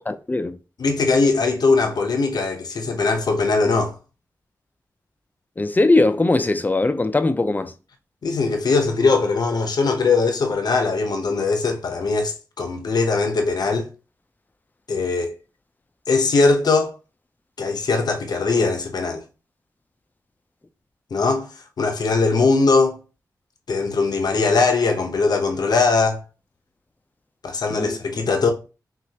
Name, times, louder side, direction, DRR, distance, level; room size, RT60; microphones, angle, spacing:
voice 1, 0.1-0.6 5.6-7.7 27.7-28.0, left 2 dB, 25° left, 0.5 m, -20 dB
voice 2, 0.8-3.9 8.2-13.9 14.9-15.3 16.1-16.9 17.6-19.2 21.1-21.5 21.8-23.0 23.7-26.2 27.4-28.5, left 4 dB, 75° left, 0.8 m, -20 dB
6.0 x 2.5 x 2.8 m
wide cardioid pair, 75°, 7 cm